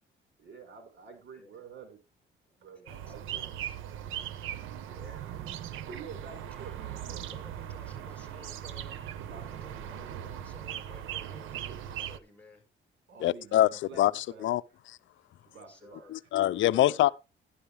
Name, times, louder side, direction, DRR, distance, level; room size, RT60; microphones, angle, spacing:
voice 1, 0.4-2.0 2.6-3.7 4.6-6.7 7.1-7.3 9.2-10.1 11.5-11.8 13.1-14.0 14.3-14.5 15.4-16.1 16.5-16.7, right 5 dB, 65° right, 5.0 m, -49 dB
voice 2, 2.8-3.7 4.8-5.2 6.1-12.6 15.5-16.1 16.7-17.0, left 3 dB, 5° left, 5.6 m, -55 dB
sound 1, 2.9-12.2, right 10 dB, 90° right, 1.0 m, -39 dB
voice 3, 13.2-13.7 14.0-14.6 16.1-17.1, left 13 dB, 75° left, 0.6 m, -24 dB
12.5 x 11.5 x 3.4 m
cardioid pair, 90°, 20 cm